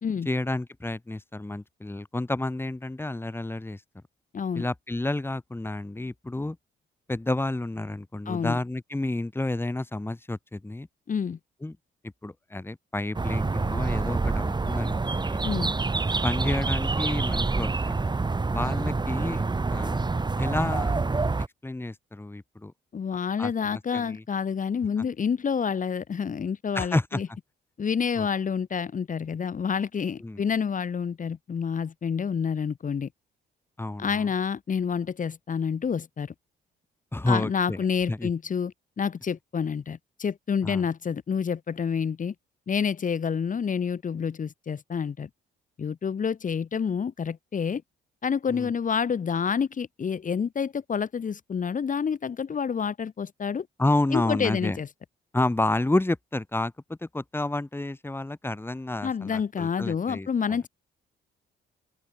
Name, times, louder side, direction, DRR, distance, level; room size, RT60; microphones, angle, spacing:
voice 1, 0.3-3.8 4.5-6.6 7.1-10.9 11.6-11.8 12.2-15.4 16.2-18.0 18.5-20.1 20.4-21.0 21.6-22.7 23.4-24.2 26.7-27.2 28.2-28.3 30.2-30.4 33.8-34.3 37.1-38.3 40.6-40.8 48.5-48.7 53.8-54.8 55.3-60.6, left 2 dB, 10° left, 2.4 m, -30 dB
voice 2, 4.3-4.7 8.3-8.6 11.1-11.4 15.4-15.7 22.9-27.3 27.8-33.1 34.0-36.3 37.3-42.3 42.7-45.3 45.8-47.8 48.2-53.7 54.1-54.9 59.0-60.7, left 6 dB, 40° left, 1.7 m, -28 dB
sound 1, 13.1-21.5, right 3 dB, 20° right, 1.9 m, -27 dB
open air
cardioid pair, 90°, 20 cm